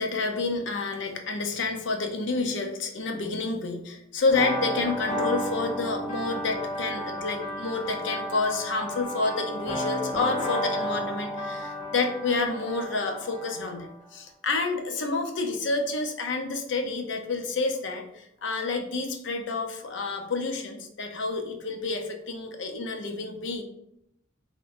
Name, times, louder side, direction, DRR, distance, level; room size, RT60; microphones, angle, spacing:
voice 1, 0.0-23.6, left 3 dB, 75° left, 4 dB, 0.6 m, -29 dB
sound 1, 4.3-13.9, equal, 40° left, 1.1 m, -32 dB
4.0 x 3.1 x 2.5 m, 0.77 s
head